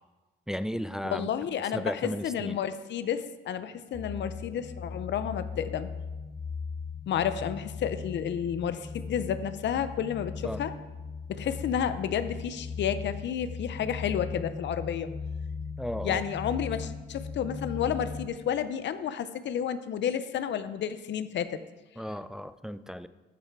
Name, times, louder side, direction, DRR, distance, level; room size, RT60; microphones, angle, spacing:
voice 1, 0.5-1.3 1.7-2.6 10.4-10.6 15.8-16.2 22.0-23.1, equal, 5° right, 13 dB, 0.4 m, -34 dB
voice 2, 1.1-5.9 7.1-10.7 11.3-15.1 16.0-21.6, left 8 dB, 65° left, 12 dB, 0.6 m, -31 dB
sound 1, 3.9-18.3, left 5 dB, 20° left, 1.3 m, -38 dB
13.0 x 5.6 x 4.6 m, 1.2 s
cardioid pair, 90°, 20 cm